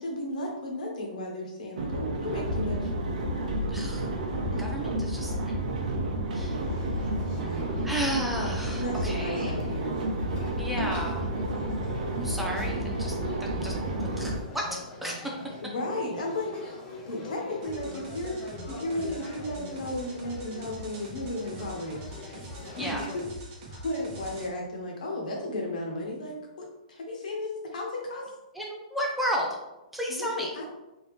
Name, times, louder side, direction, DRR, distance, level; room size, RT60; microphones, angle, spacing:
voice 1, 0.0-2.9 4.5-4.6 7.3-8.0 8.7-10.0 10.8-10.9 15.6-18.4 18.6-22.0 22.8-28.3 30.1-30.6, left 1 dB, 75° left, 0 dB, 1.2 m, -34 dB
sound 1, 1.8-14.4, right 1 dB, 65° right, 0.8 m, -30 dB
voice 2, 3.7-4.1 4.6-6.1 6.3-6.6 7.8-9.5 10.6-11.1 12.2-13.1 13.6-13.7 14.0-14.6 15.0-15.2 22.8-23.0 28.6-29.5 29.9-30.5, equal, 5° right, -2 dB, 0.4 m, -33 dB
sound 2, 6.5-23.3, left 2 dB, 20° left, 0.7 m, -44 dB
sound 3, 17.6-24.5, right 1 dB, 30° right, 0.8 m, -44 dB
3.7 x 2.8 x 3.2 m, 0.96 s
hypercardioid pair, 160°, 4 cm